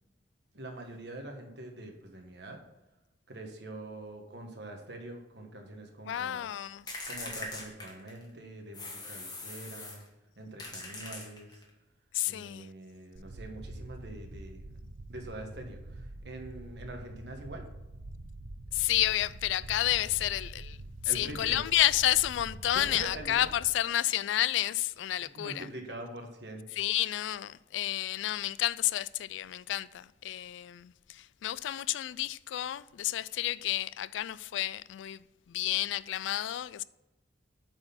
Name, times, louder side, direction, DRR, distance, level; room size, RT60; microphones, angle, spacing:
voice 1, 0.5-2.6 3.3-6.5 7.1-10.0 10.4-11.6 12.3-17.6 21.0-21.6 22.7-23.3 25.3-26.6, right 1 dB, 65° right, 1.3 m, -44 dB
voice 2, 6.1-7.0 12.1-12.7 18.7-20.8 21.0-25.7 26.7-36.8, left 13 dB, 80° left, 0.3 m, -30 dB
sound 1, 6.9-8.3 8.7-10.1 10.6-11.7, left 2 dB, 20° left, 1.4 m, -41 dB
sound 2, 13.2-23.7, right 2 dB, 80° right, 0.8 m, -45 dB
8.9 x 4.3 x 5.7 m
head